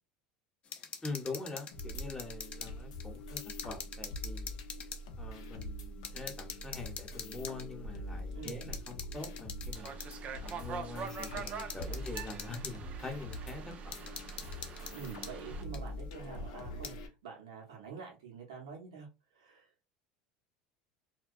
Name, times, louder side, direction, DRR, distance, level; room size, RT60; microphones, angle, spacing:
sound 1, 0.6-2.7 3.0-5.0 5.6-5.7 6.0-7.7 8.5-10.1 10.5-10.6 11.2-12.8 13.3-13.4 13.9-15.3 15.7-15.8 16.6-16.9, left 6 dB, 40° left, 0.5 m, -45 dB
voice 1, 1.0-4.5 5.2-10.0 10.4-14.0, left 3 dB, 15° left, 0.8 m, -44 dB
sound 2, 1.7-17.1, equal, 80° left, 0.6 m, -44 dB
voice 2, 8.3-8.7 11.9-12.0 14.9-19.7, right 6 dB, 85° right, 0.7 m, -47 dB
sound 3, 9.7-15.6, right 6 dB, 40° right, 0.4 m, -45 dB
2.2 x 2.2 x 2.5 m
hypercardioid pair, 90°, 3 cm